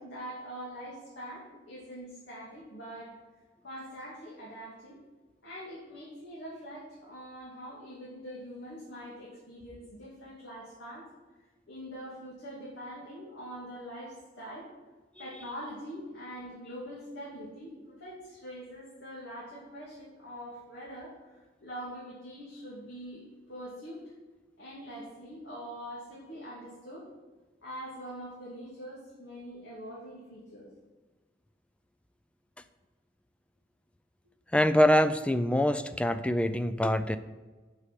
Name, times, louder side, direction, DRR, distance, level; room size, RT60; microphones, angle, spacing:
voice 1, 0.0-3.1 3.6-5.0 5.4-11.0 11.7-14.7 15.2-24.0 24.6-27.1 27.6-30.7, equal, 75° left, -7 dB, 2.6 m, -43 dB
voice 2, 34.5-37.2, left 1 dB, 5° left, 11 dB, 0.3 m, -24 dB
7.0 x 6.5 x 7.5 m, 1.3 s
head